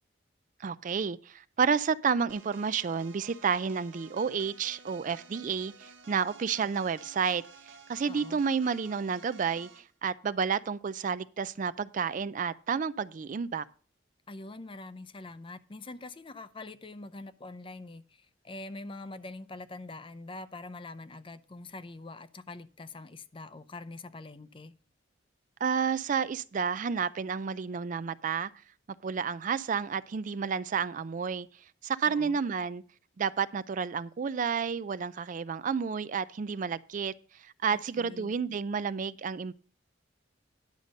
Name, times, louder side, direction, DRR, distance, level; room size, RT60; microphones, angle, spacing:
voice 1, 0.6-13.6 25.6-28.5 29.0-31.5 31.8-32.8 33.2-37.1 37.4-39.5, right 6 dB, 45° right, 0.4 m, -31 dB
sound 1, 2.3-9.9, right 4 dB, 80° right, 1.2 m, -53 dB
voice 2, 8.1-8.4 14.3-24.7 32.1-32.4 37.7-38.3, left 2 dB, 30° left, 0.6 m, -44 dB
10.5 x 6.6 x 5.1 m
head